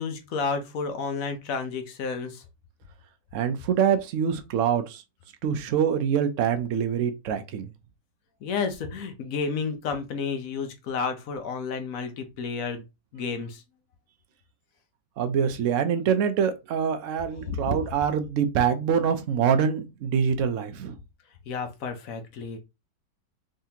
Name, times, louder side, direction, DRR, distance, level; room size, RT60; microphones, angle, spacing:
voice 1, 0.0-2.4 8.4-12.8 13.1-13.6 21.5-22.6, left 5 dB, 60° left, 1.0 m, -31 dB
voice 2, 3.3-5.0 5.4-7.7 15.2-20.9, right 7 dB, 80° right, 0.7 m, -25 dB
3.7 x 3.2 x 2.8 m
omnidirectional pair, 1.9 m